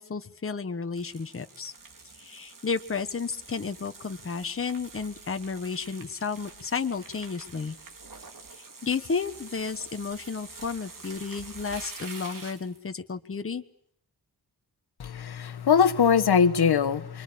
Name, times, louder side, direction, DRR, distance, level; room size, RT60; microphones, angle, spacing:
voice 1, 0.0-1.7 2.2-7.8 8.8-13.6, left 5 dB, 35° left, 8 dB, 1.3 m, -32 dB
sound 1, 1.0-12.8, right 4 dB, 55° right, 4.0 m, -46 dB
voice 2, 15.0-17.2, left 7 dB, 80° left, 11 dB, 1.4 m, -22 dB
29.0 x 23.5 x 8.7 m, 0.68 s
wide cardioid pair, 155°, 38 cm